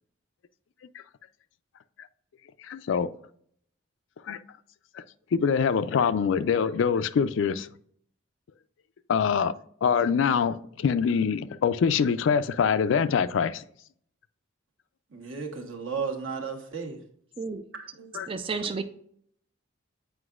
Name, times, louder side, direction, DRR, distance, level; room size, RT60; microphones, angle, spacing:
voice 1, 2.6-3.1 4.3-4.4 5.3-7.7 9.1-9.5 9.8-13.6 18.1-18.3, left 6 dB, 70° left, 0.3 m, -24 dB
voice 2, 15.1-17.0 17.7-18.1, right 5 dB, 85° right, 1.2 m, -34 dB
voice 3, 18.3-18.8, right 4 dB, 25° right, 0.4 m, -31 dB
8.0 x 4.9 x 2.4 m
head